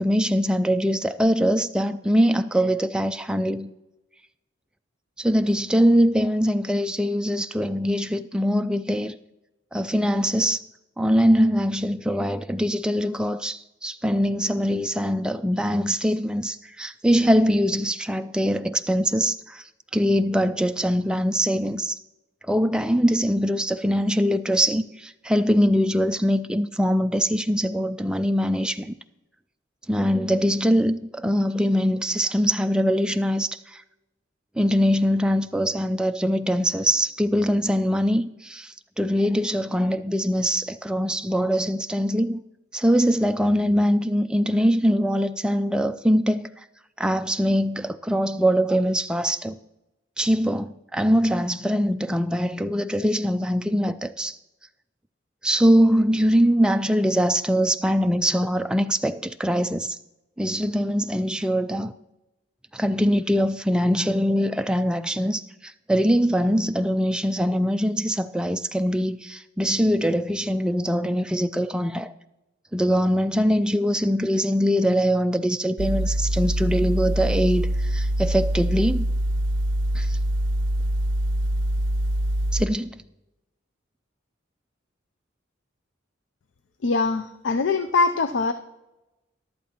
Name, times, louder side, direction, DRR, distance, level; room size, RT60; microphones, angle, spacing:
voice 1, 0.0-3.7 5.2-9.2 9.7-10.6 11.0-19.6 19.9-22.0 22.5-28.9 29.9-33.8 34.6-42.4 42.7-46.5 47.0-49.6 50.2-54.4 55.4-60.0 60.4-61.9 62.7-72.1 72.7-79.1 79.9-80.2 82.5-83.0, equal, 5° right, 0.3 m, -22 dB
sound 1, 75.8-82.7, right 1 dB, 75° right, 0.6 m, -24 dB
voice 2, 86.8-88.5, left 4 dB, 70° left, 0.5 m, -22 dB
13.5 x 11.5 x 2.9 m
head